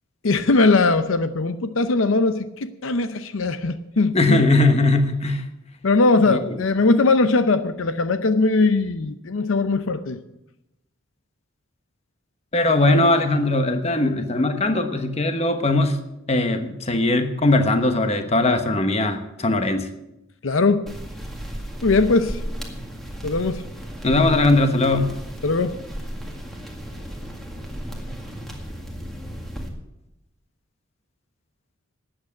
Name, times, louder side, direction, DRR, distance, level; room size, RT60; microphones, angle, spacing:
voice 1, 0.2-4.5 5.8-10.2 20.4-20.9 21.8-22.4 23.2-23.6 25.4-25.7, left 3 dB, 75° left, 11 dB, 0.7 m, -20 dB
voice 2, 4.1-5.5 6.3-6.6 12.5-16.0 16.3-19.9 24.0-25.1, left 2 dB, 30° left, 7 dB, 1.1 m, -20 dB
sound 1, 20.9-29.7, equal, ahead, 1.9 m, -34 dB
12.5 x 8.8 x 8.5 m, 0.91 s
head